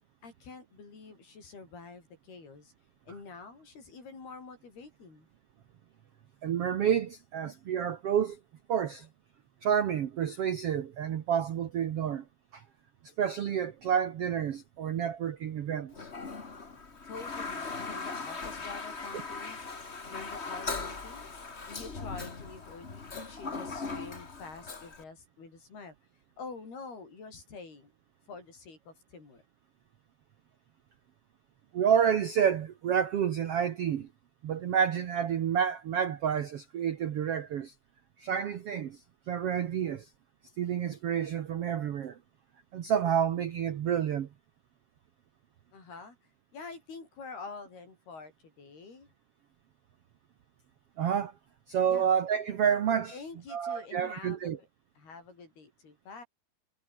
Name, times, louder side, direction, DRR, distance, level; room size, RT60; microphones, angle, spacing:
voice 1, 0.2-2.7 3.1-5.3 17.1-19.7 20.1-21.3 21.6-26.0 26.4-27.9 28.3-29.4 45.7-46.2 46.5-49.1 51.9-52.1 53.1-54.5 55.0-56.2, left 4 dB, 80° left, 9.6 m, -46 dB
voice 2, 6.4-8.4 8.7-9.1 9.6-12.2 12.5-12.6 13.2-16.1 31.7-34.1 34.4-37.7 38.2-39.0 39.3-40.1 40.6-42.2 42.7-44.3 51.0-51.3 51.7-53.2 53.5-54.6, right 8 dB, 70° right, 1.4 m, -29 dB
Toilet flush, 15.9-25.0, left 4 dB, 25° left, 1.4 m, -39 dB
omnidirectional pair, 4.4 m